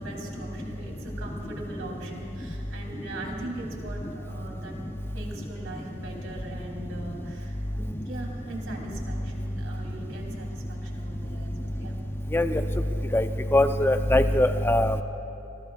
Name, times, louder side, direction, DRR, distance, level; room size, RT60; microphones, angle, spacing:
voice 1, 0.0-4.7 5.1-12.0, right 2 dB, 65° right, 0 dB, 3.2 m, -40 dB
voice 2, 13.5-15.0, left 1 dB, 10° left, 7 dB, 0.6 m, -21 dB
26.5 x 21.5 x 2.4 m, 3.0 s
head